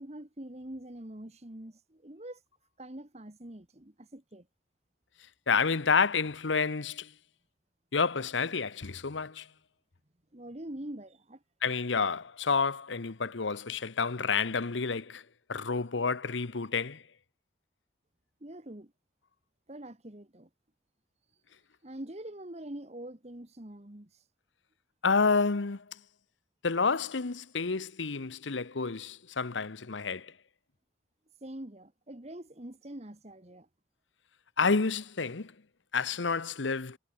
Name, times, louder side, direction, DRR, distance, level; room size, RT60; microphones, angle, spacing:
voice 1, 0.0-2.4 2.8-4.5 10.3-11.4 18.4-18.9 19.7-20.5 21.8-24.1 31.4-33.7, right 1 dB, 35° right, 1.7 m, -44 dB
voice 2, 5.5-7.1 7.9-9.5 11.6-15.2 15.5-17.0 25.0-25.8 26.6-30.3 34.6-35.5 35.9-37.0, left 5 dB, 85° left, 1.0 m, -29 dB
head